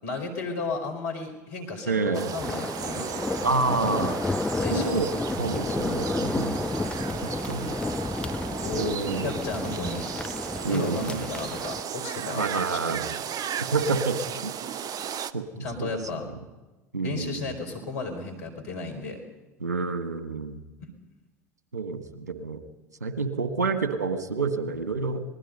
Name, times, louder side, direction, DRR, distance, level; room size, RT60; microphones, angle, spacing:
voice 1, 0.0-3.1 4.6-5.0 8.6-10.1 10.7-12.4 12.7-12.8 15.6-16.3 17.0-19.2, left 3 dB, 75° left, 5 dB, 4.9 m, -33 dB
voice 2, 1.9-2.3 3.4-4.2 4.5-5.1 5.4-6.6 7.2-7.7 8.7-9.3 10.6-11.3 12.3-13.1 13.6-14.5 15.2-15.9 16.9-17.4 19.6-20.6 21.7-22.6 23.0-25.2, right 4 dB, 90° right, 9 dB, 1.7 m, -28 dB
sound 1, 2.1-15.3, right 9 dB, 45° right, 1.0 m, -35 dB
sound 2, 2.4-11.8, left 3 dB, 10° left, 0.8 m, -31 dB
26.5 x 20.0 x 5.5 m, 1.1 s
hypercardioid pair, 70°, 9 cm